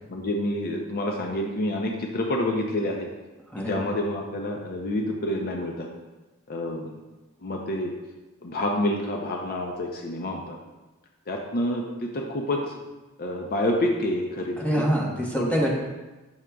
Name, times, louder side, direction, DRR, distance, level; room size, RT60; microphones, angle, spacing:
voice 1, 0.1-3.1 3.7-5.9 6.5-7.0 7.4-7.9 8.4-10.6 11.3-12.7 13.2-14.9 15.4-15.5, left 1 dB, 45° left, 1 dB, 0.5 m, -28 dB
voice 2, 3.5-3.9 14.6-15.8, equal, 5° left, -3 dB, 1.0 m, -25 dB
7.1 x 6.2 x 2.3 m, 1.1 s
head